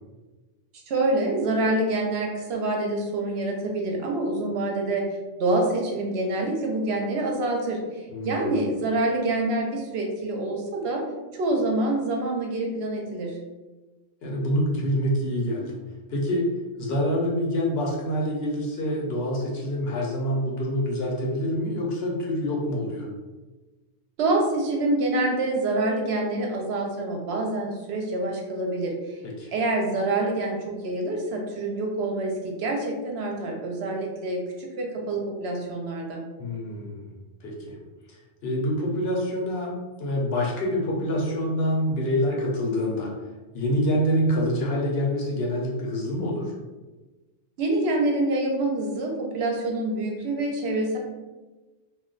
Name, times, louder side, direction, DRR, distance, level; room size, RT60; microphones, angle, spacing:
voice 1, 0.9-5.0 5.4-11.0 11.3-13.4 24.2-29.2 29.5-36.2 47.6-51.0, right 2 dB, 65° right, 1 dB, 0.8 m, -26 dB
voice 2, 8.1-8.6 14.2-15.8 16.1-16.5 16.8-23.1 29.2-29.5 36.4-37.1 37.4-37.8 38.1-43.1 43.5-46.5, equal, 65° left, -2 dB, 0.8 m, -26 dB
2.3 x 2.2 x 3.7 m, 1.2 s
omnidirectional pair, 1.3 m